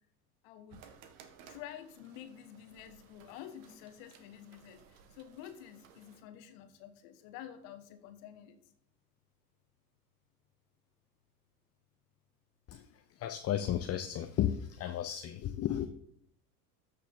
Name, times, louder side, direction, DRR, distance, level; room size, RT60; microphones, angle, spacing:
voice 1, 0.4-0.9 1.5-8.6, left 10 dB, 55° left, 9 dB, 1.4 m, -49 dB
sound 1, 0.7-6.2, right 7 dB, 60° right, 1.6 m, -59 dB
voice 2, 12.7-15.9, left 11 dB, 30° left, 8 dB, 0.7 m, -34 dB
13.5 x 6.6 x 3.8 m, 0.69 s
hypercardioid pair, 75°, 46 cm